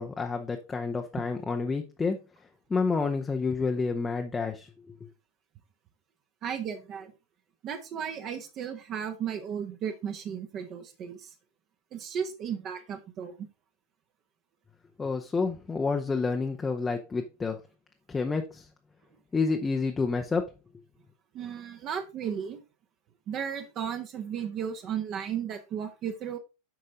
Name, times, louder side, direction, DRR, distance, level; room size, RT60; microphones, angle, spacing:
voice 1, 0.0-2.2 2.7-4.7 15.0-17.6 18.1-18.7 19.3-20.4, left 4 dB, 15° left, 4 dB, 0.8 m, -29 dB
voice 2, 6.4-7.1 7.6-11.3 11.9-13.5 21.3-22.6 23.3-26.4, right 8 dB, 30° right, 7 dB, 1.1 m, -35 dB
8.9 x 5.4 x 3.8 m, 0.29 s
figure-of-eight pair, 90°, 0 cm